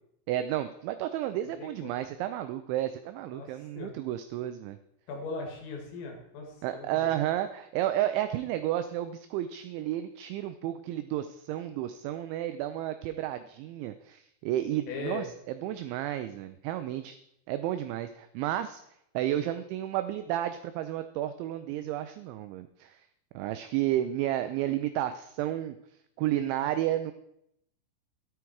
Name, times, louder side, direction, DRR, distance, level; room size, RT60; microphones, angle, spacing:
voice 1, 0.3-4.8 6.6-17.2 17.5-18.8 19.1-23.1 23.3-25.8 26.2-27.1, right 12 dB, 90° right, 10 dB, 2.6 m, -32 dB
voice 2, 1.6-1.9 3.3-3.9 5.1-7.1 14.9-15.2, left 4 dB, 75° left, 1 dB, 4.8 m, -39 dB
13.0 x 9.1 x 4.7 m, 0.77 s
omnidirectional pair, 5.9 m